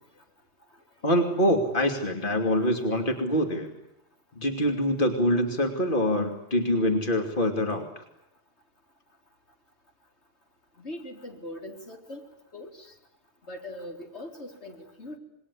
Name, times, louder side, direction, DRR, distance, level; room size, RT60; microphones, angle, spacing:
voice 1, 1.0-3.7 4.4-8.0, equal, 50° left, 5 dB, 2.9 m, -25 dB
voice 2, 10.8-12.2 12.5-12.9 13.5-15.2, left 1 dB, 85° left, 3 dB, 4.4 m, -41 dB
27.0 x 22.0 x 9.8 m, 0.83 s
omnidirectional pair, 1.1 m